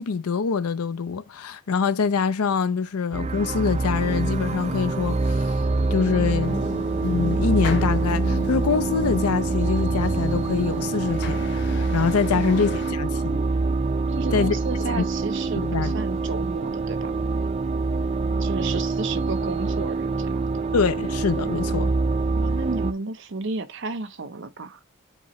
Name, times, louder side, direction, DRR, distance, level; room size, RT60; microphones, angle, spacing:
voice 1, 0.0-5.6 5.9-6.6 7.0-13.4 14.3-14.6 14.9-15.0 15.6-15.9 20.7-21.9, left 5 dB, 85° left, 0.5 m, -25 dB
sound 1, 3.1-22.9, right 3 dB, 30° right, 0.4 m, -25 dB
sound 2, 6.4-12.9, left 2 dB, 50° left, 0.9 m, -35 dB
voice 2, 14.2-17.1 18.4-20.7 22.3-24.8, right 3 dB, 55° right, 0.7 m, -33 dB
7.9 x 2.9 x 4.2 m
head